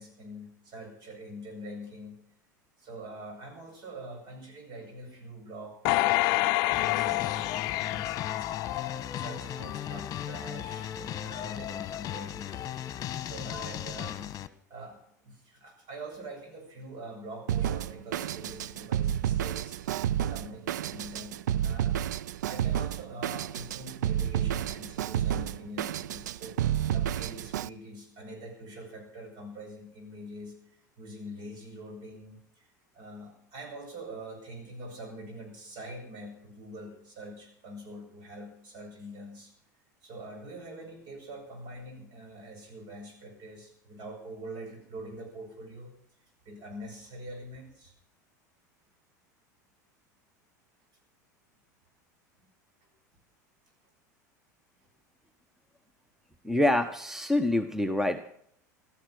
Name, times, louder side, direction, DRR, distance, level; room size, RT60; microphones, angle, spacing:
voice 1, 0.0-2.2 2.8-12.9 13.2-14.4 14.7-22.0 22.5-26.6 26.8-30.6 31.0-32.7 32.9-39.5 40.0-45.9 46.4-47.9, right 1 dB, 50° right, 4 dB, 7.5 m, -44 dB
sound 1, 5.8-9.3 9.8-9.9, left 18 dB, 55° left, 0.5 m, -28 dB
sound 2, 6.7-14.5, left 10 dB, 40° left, 1.3 m, -37 dB
Drum kit, 17.5-27.7, right 10 dB, 75° right, 0.5 m, -31 dB
voice 2, 56.4-58.2, left 1 dB, 5° right, 10 dB, 1.1 m, -26 dB
16.5 x 13.5 x 6.2 m, 0.67 s
hypercardioid pair, 80°, 10 cm